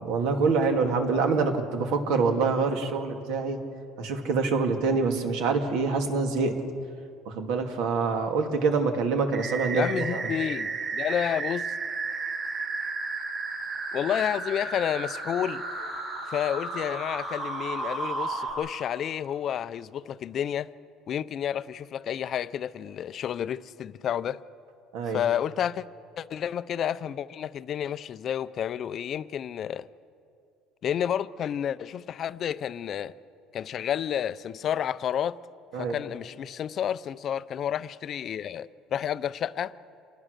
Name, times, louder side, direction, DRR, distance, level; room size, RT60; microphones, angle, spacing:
voice 1, 0.0-3.6 4.0-6.6 7.3-10.2 24.9-25.2 35.7-36.0, right 4 dB, 75° right, 2.3 m, -25 dB
sound 1, 9.3-18.5, right 3 dB, 30° right, 5.8 m, -33 dB
voice 2, 9.7-11.7 13.9-15.6 16.3-20.7 21.1-24.4 25.1-25.9 26.2-29.9 30.8-33.1 33.5-35.4 35.7-39.7, left 9 dB, 40° left, 0.5 m, -30 dB
27.5 x 20.0 x 6.6 m
cardioid pair, 160°, 0 cm